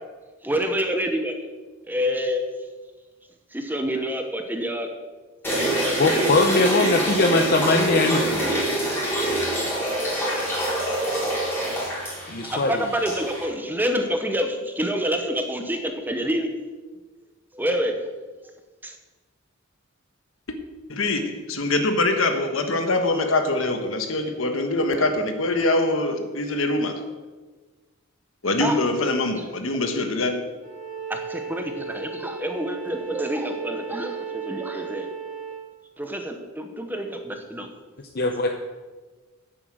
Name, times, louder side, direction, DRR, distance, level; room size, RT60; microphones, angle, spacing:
voice 1, 0.4-1.5 1.8-2.5 3.5-4.9 5.6-7.5 8.1-8.4 12.4-16.5 17.5-18.2 18.8-19.0 28.6-28.8 29.4-29.5 31.1-35.1 36.0-37.7, equal, 10° right, 5 dB, 1.0 m, -28 dB
sound 1, 5.4-13.4, right 1 dB, 10° left, 3.6 m, -25 dB
voice 2, 6.0-8.4 12.3-12.8 38.1-38.5, left 2 dB, 50° left, 4 dB, 0.7 m, -21 dB
voice 3, 20.9-27.0 28.4-30.4, left 2 dB, 75° left, 6 dB, 1.4 m, -23 dB
Bowed string instrument, 30.6-35.6, right 6 dB, 40° right, 3.2 m, -35 dB
9.8 x 8.3 x 6.3 m, 1.3 s
head